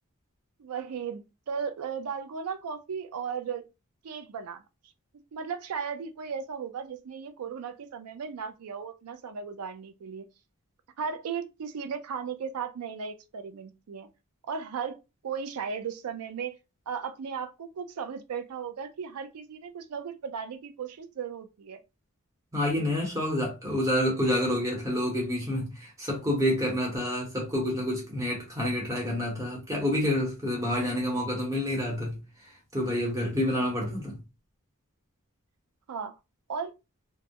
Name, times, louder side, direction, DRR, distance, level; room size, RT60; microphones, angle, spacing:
voice 1, 0.6-3.6 4.0-4.6 5.3-10.3 11.0-14.1 14.5-15.0 15.2-16.5 16.9-21.8 33.6-34.0 35.9-36.2 36.5-36.7, right 6 dB, 85° right, 0.4 m, -36 dB
voice 2, 22.5-32.2 32.7-34.2, left 1 dB, 15° right, 0.9 m, -28 dB
2.2 x 2.0 x 2.8 m
head